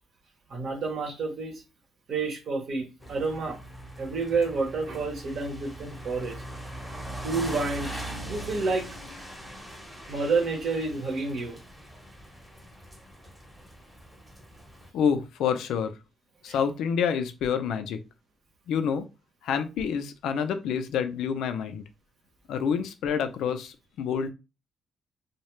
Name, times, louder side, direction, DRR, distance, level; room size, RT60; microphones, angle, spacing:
voice 1, 0.5-1.6 2.1-3.6 4.0-6.3 7.2-7.9 8.3-8.9 10.1-11.6, right 4 dB, 60° right, 0.8 m, -29 dB
sound 1, 3.0-14.9, right 1 dB, ahead, 0.8 m, -41 dB
voice 2, 14.9-15.9 16.4-18.0 18.7-19.1 19.4-21.8 22.5-24.3, left 7 dB, 80° left, 0.3 m, -28 dB
2.2 x 2.0 x 3.0 m
cardioid pair, 90°, 0 cm